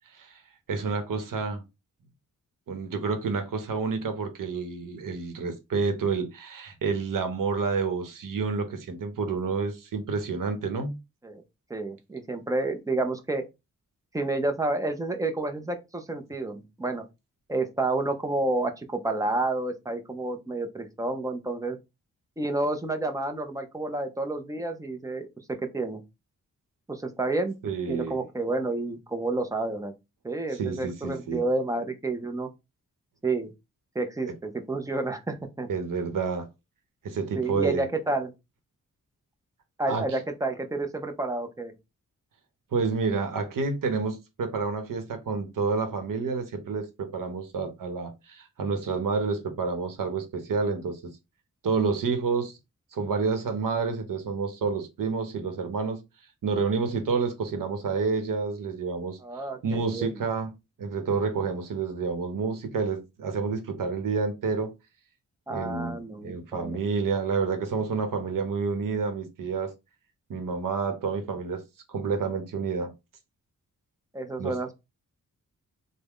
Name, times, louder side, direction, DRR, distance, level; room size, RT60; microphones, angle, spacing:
voice 1, 0.7-1.6 2.7-11.0 27.6-28.2 30.6-31.4 35.7-36.5 37.0-37.8 39.9-40.0 42.7-51.1 51.6-52.5 52.9-56.0 56.4-59.2 59.6-60.5 60.8-64.7 65.5-69.7 70.3-71.6 71.9-72.9 74.4-74.5, right 4 dB, 80° right, 0.8 m, -29 dB
voice 2, 11.7-13.4 14.1-17.0 17.5-21.8 22.4-26.0 26.9-27.5 27.9-29.9 30.2-32.5 33.2-33.5 33.9-35.7 37.3-38.3 39.8-41.7 59.2-60.2 65.5-66.8 74.1-74.7, right 2 dB, 10° right, 0.4 m, -30 dB
3.5 x 2.1 x 3.5 m
wide cardioid pair, 155°, 32 cm